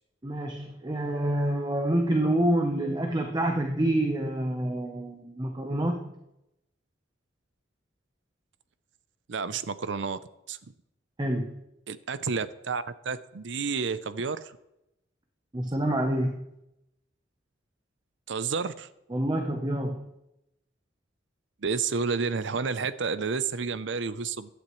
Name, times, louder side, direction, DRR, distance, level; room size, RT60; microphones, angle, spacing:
voice 1, 0.2-6.1 11.2-11.5 15.5-16.4 19.1-20.1, right 1 dB, 20° right, 3 dB, 0.9 m, -27 dB
voice 2, 9.3-10.2 10.5-10.6 11.9-14.6 18.3-18.9 21.6-24.5, right 5 dB, 70° right, 14 dB, 0.6 m, -30 dB
16.0 x 12.0 x 3.2 m, 0.86 s
head